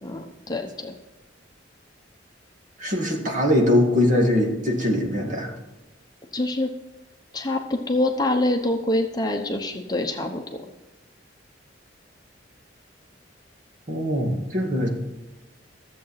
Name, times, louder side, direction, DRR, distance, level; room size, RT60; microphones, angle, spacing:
voice 1, 0.0-0.9 6.3-6.7 7.3-10.6, left 1 dB, 20° left, 4 dB, 0.9 m, -25 dB
voice 2, 2.8-5.5 13.9-14.9, left 1 dB, 45° right, 1 dB, 2.1 m, -22 dB
13.5 x 7.7 x 5.8 m, 1.1 s
head